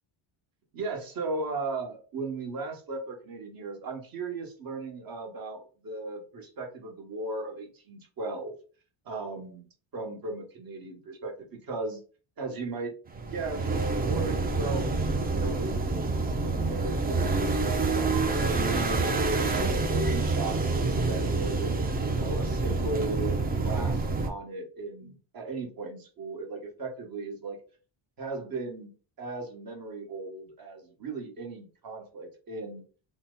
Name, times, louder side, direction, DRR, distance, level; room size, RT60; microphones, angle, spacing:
voice 1, 0.7-8.5 9.0-9.7 9.9-11.3 11.6-12.0 12.4-13.7 14.0-14.9 15.3-19.2 19.9-23.4 23.6-27.6 28.2-32.8, right 3 dB, 45° right, 1 dB, 1.1 m, -37 dB
sound 1, 13.1-24.3, right 3 dB, 20° right, 0.3 m, -27 dB
2.8 x 2.1 x 3.6 m, 0.38 s
cardioid pair, 125°, 49 cm